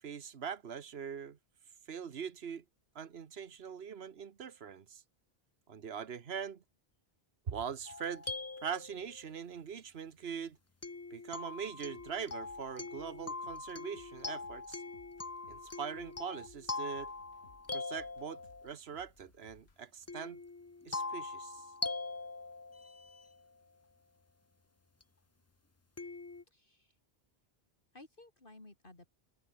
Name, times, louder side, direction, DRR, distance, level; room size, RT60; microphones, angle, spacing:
voice 1, 0.0-1.4 1.9-2.6 2.9-5.0 5.7-6.6 7.5-8.3 8.6-10.6 11.1-14.8 15.5-17.1 17.7-20.4 20.8-21.7, right 7 dB, 75° right, 1.4 m, -42 dB
sound 1, 7.9-9.3 10.8-18.7 20.1-23.4 25.0-25.1 26.0-26.4, left 3 dB, 20° left, 0.4 m, -42 dB
sound 2, 11.9-19.8, left 3 dB, 85° left, 2.9 m, -64 dB
voice 2, 26.5-27.0 27.9-29.1, left 2 dB, 55° left, 4.0 m, -56 dB
omnidirectional pair, 1.0 m